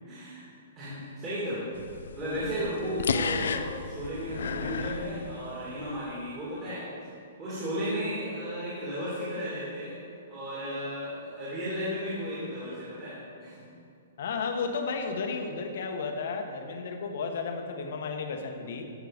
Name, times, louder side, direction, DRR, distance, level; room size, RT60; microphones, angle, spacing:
voice 1, 0.1-0.4 0.8-1.6 2.1-6.9 7.4-10.0 10.3-13.7, equal, 20° right, -11 dB, 2.7 m, -34 dB
sound 1, 1.7-5.9, left 6 dB, 75° left, 0.6 m, -33 dB
voice 2, 14.2-18.8, left 4 dB, 50° left, 4 dB, 1.3 m, -33 dB
13.0 x 6.5 x 5.3 m, 2.5 s
hypercardioid pair, 175°, 0 cm